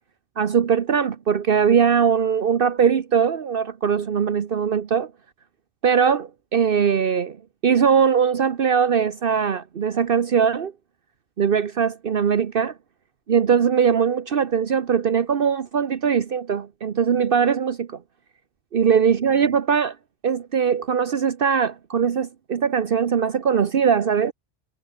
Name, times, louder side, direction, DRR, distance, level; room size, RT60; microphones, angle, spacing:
voice 1, 0.4-5.1 5.8-7.4 7.6-10.7 11.4-12.7 13.3-18.0 18.7-20.0 20.2-24.3, right 7 dB, 60° right, 1.1 m, -21 dB
omnidirectional pair, 1.1 m